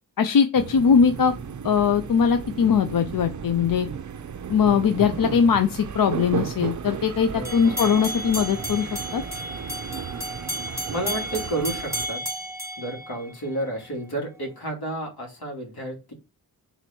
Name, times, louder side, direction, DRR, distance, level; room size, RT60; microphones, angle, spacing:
voice 1, 0.2-1.3 1.6-3.9 4.5-9.2, left 6 dB, 60° left, 9 dB, 0.6 m, -21 dB
sound 1, 0.5-12.1, right 7 dB, 50° right, 0.7 m, -34 dB
voice 2, 7.3-7.9 10.9-12.3 12.8-16.1, right 1 dB, 80° left, 1 dB, 2.8 m, -31 dB
sound 2, 7.4-13.7, equal, 5° right, 1.4 m, -33 dB
6.1 x 4.0 x 4.5 m, 0.27 s
wide cardioid pair, 105°, 38 cm